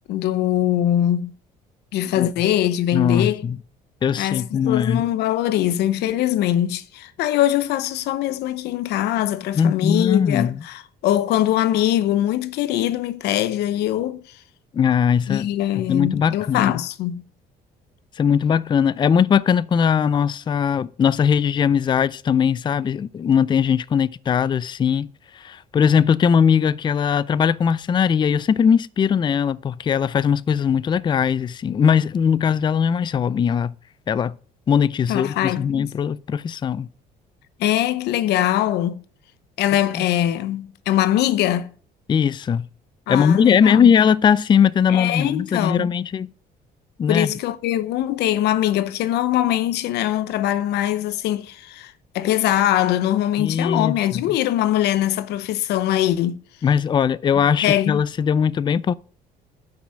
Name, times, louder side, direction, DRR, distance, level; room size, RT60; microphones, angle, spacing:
voice 1, 0.1-1.3 1.9-3.4 4.2-14.2 15.3-17.2 35.1-35.9 37.6-39.0 39.6-41.7 43.1-43.9 44.9-45.9 47.1-56.4 57.6-58.0, left 12 dB, 80° left, 0.8 m, -22 dB
voice 2, 2.9-3.6 4.0-5.0 9.6-10.6 14.7-15.5 15.8-16.7 18.2-25.1 25.3-33.7 34.1-34.3 34.7-36.9 40.0-40.1 42.1-42.7 43.1-46.3 47.0-47.3 53.4-54.2 56.6-58.9, left 7 dB, 25° left, 0.4 m, -20 dB
8.4 x 6.1 x 6.3 m
cardioid pair, 110°, 17 cm